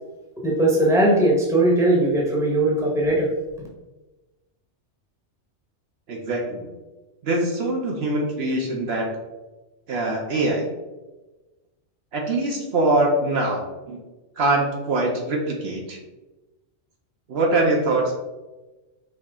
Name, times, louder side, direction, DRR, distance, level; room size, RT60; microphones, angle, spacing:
voice 1, 0.4-3.3, right 1 dB, 5° right, -3 dB, 0.8 m, -19 dB
voice 2, 6.1-6.7 7.2-9.1 9.9-10.7 12.1-14.0 14.4-16.0 17.3-18.1, right 2 dB, 65° right, 0 dB, 0.9 m, -23 dB
4.8 x 2.8 x 3.5 m, 1.1 s
omnidirectional pair, 1.2 m